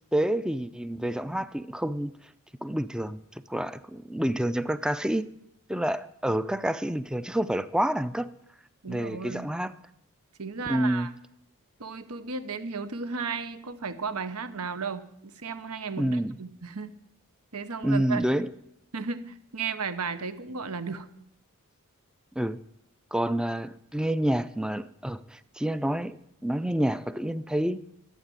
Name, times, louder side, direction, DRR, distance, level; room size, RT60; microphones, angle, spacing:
voice 1, 0.1-2.1 2.6-3.2 3.5-5.3 5.7-8.3 8.9-9.7 10.7-11.1 16.0-16.4 17.8-18.5 22.4-22.6 23.1-27.8, right 1 dB, 5° right, 0.4 m, -28 dB
voice 2, 8.8-9.5 10.4-11.1 11.8-16.9 17.5-18.2 18.9-21.1, right 5 dB, 80° right, 1.0 m, -34 dB
13.0 x 7.3 x 9.7 m
head